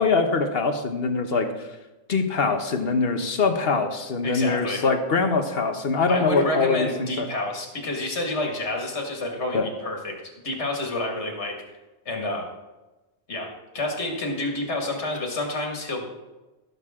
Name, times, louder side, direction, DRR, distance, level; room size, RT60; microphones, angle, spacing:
voice 1, 0.0-1.7 2.1-7.3 9.5-9.7, left 4 dB, 60° left, 6 dB, 1.2 m, -23 dB
voice 2, 4.2-4.8 6.1-10.1 10.4-11.5 12.1-12.5 13.3-16.1, left 2 dB, 80° left, 1 dB, 2.2 m, -29 dB
16.0 x 6.9 x 3.7 m, 1.1 s
omnidirectional pair, 1.1 m